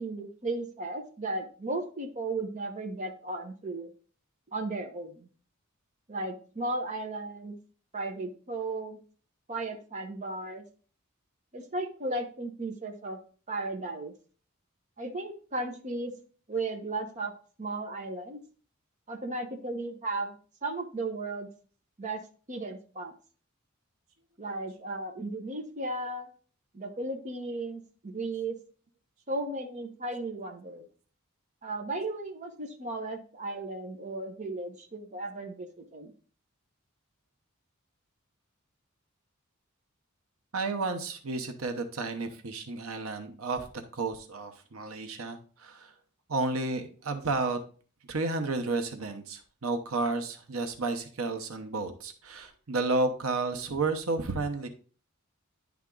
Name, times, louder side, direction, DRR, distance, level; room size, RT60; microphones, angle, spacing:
voice 1, 0.0-3.9 4.5-5.3 6.1-7.6 7.9-9.0 9.5-10.6 11.5-13.2 13.5-14.1 15.0-16.1 16.5-17.3 17.6-18.4 19.1-20.4 20.6-21.5 22.0-22.2 22.5-23.1 24.4-26.3 26.7-28.6 29.3-30.8 31.6-36.1, right 2 dB, 35° right, 3 dB, 1.0 m, -35 dB
voice 2, 40.5-43.7 43.9-45.9 46.3-47.6 48.1-54.7, right 3 dB, 90° right, 6 dB, 0.9 m, -32 dB
10.0 x 3.6 x 3.8 m, 0.40 s
head